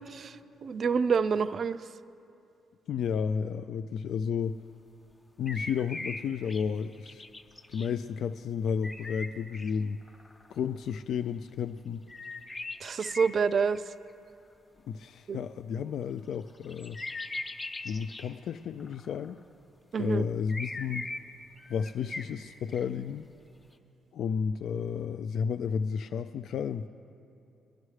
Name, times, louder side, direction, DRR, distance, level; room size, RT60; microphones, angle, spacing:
voice 1, 0.6-1.8 12.8-13.8 15.3-15.4 19.9-20.3, right 6 dB, 50° right, 14 dB, 0.3 m, -27 dB
voice 2, 2.9-4.6 5.4-7.3 7.7-10.0 10.5-12.0 14.9-17.0 17.8-19.4 20.0-21.1 21.7-23.3 24.1-26.9, left 6 dB, 70° left, 10 dB, 0.3 m, -32 dB
sound 1, 5.5-6.6 6.9-7.9 8.8-9.7 10.0-10.8 12.1-13.9 16.6-18.3 18.8-19.3 20.5-21.2 21.6-22.3 22.7-22.8, left 2 dB, 25° left, 0.9 m, -40 dB
21.0 x 11.0 x 3.2 m, 2.7 s
cardioid pair, 90°, 0 cm